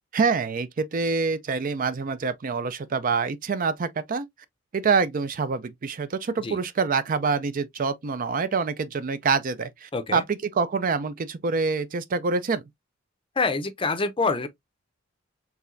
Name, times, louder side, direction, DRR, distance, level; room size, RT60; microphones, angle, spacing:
voice 1, 0.1-4.3 4.7-12.6, right 4 dB, 45° right, 0.4 m, -26 dB
voice 2, 9.9-10.2 13.4-14.5, left 4 dB, 25° left, 0.6 m, -26 dB
4.7 x 3.2 x 2.5 m
head